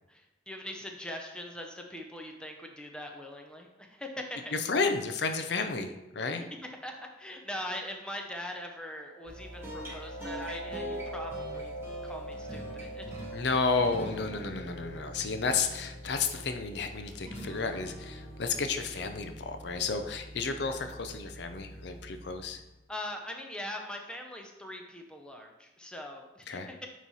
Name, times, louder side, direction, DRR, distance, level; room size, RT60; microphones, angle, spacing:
voice 1, 0.1-4.5 6.6-11.7 12.0-13.0 22.9-26.9, left 1 dB, 5° left, 2 dB, 0.6 m, -41 dB
voice 2, 4.5-6.5 13.3-22.6 26.5-26.7, left 4 dB, 65° left, 7 dB, 0.5 m, -32 dB
sound 1, 9.0-18.4, right 1 dB, 85° left, 1.1 m, -44 dB
sound 2, 9.3-22.8, equal, 15° right, 1.6 m, -44 dB
9.1 x 3.1 x 4.1 m, 1.0 s
head